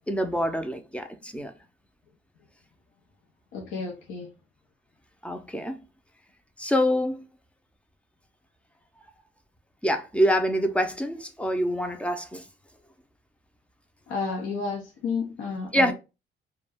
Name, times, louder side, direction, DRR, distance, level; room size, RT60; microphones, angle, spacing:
voice 1, 0.1-1.5 5.2-5.8 6.6-7.2 9.8-12.4 15.7-15.9, equal, 5° left, 0.4 m, -25 dB
voice 2, 3.5-4.3 14.1-15.9, left 4 dB, 90° left, 0.6 m, -31 dB
2.2 x 2.2 x 3.3 m
cardioid pair, 90°, 20 cm